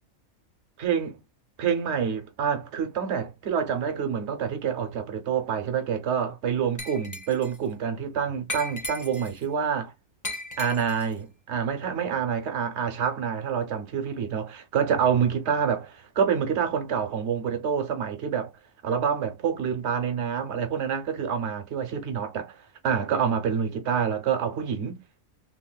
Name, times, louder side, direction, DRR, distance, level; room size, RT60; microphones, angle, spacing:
voice 1, 0.8-1.2 1.6-9.9 10.6-18.5 18.8-22.6 22.8-25.0, right 7 dB, 60° right, 1.0 m, -27 dB
Glass, 6.8-7.6 8.5-9.4 10.2-11.1, left 2 dB, 20° left, 0.5 m, -36 dB
2.9 x 2.8 x 2.3 m
omnidirectional pair, 1.4 m